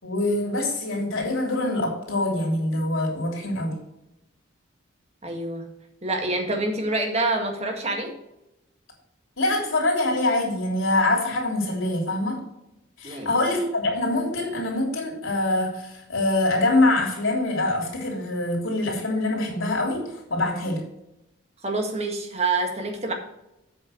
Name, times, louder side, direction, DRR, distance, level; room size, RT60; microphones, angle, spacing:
voice 1, 0.0-3.7 9.4-12.4 13.0-20.0 20.3-20.8, left 2 dB, 80° left, 0 dB, 3.3 m, -24 dB
voice 2, 5.2-5.7 6.0-8.2 13.0-13.3 21.6-23.1, right 2 dB, 30° right, 3 dB, 1.7 m, -26 dB
8.2 x 6.1 x 6.4 m, 0.88 s
head